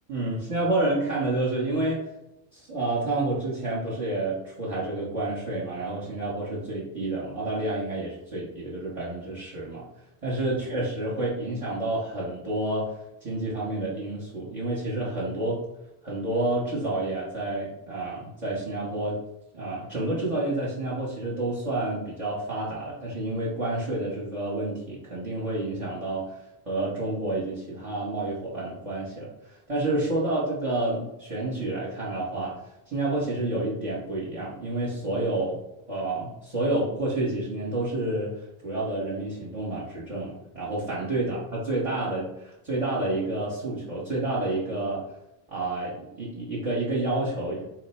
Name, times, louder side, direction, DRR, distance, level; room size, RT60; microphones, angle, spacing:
voice 1, 0.1-2.0 2.5-9.9 10.2-12.9 13.2-15.6 16.0-19.2 19.5-26.3 26.6-32.6 32.9-35.6 35.9-45.0 45.5-47.6, right 2 dB, 35° right, -7 dB, 1.1 m, -29 dB
4.4 x 2.2 x 4.3 m, 0.89 s
omnidirectional pair, 1.1 m